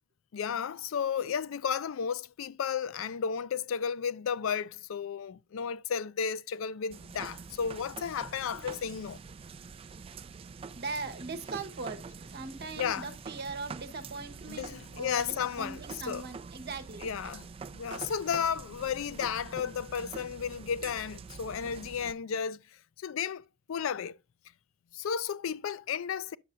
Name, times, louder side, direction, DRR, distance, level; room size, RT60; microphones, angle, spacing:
voice 1, 0.3-9.2 12.8-13.1 14.5-16.3 17.0-17.5 17.7-22.6 23.0-24.2 24.9-26.4, left 7 dB, 70° left, 0.4 m, -33 dB
sound 1, 6.9-22.1, right 5 dB, 25° right, 0.3 m, -45 dB
voice 2, 10.7-17.1, right 3 dB, 50° right, 1.1 m, -40 dB
9.3 x 6.5 x 2.5 m
head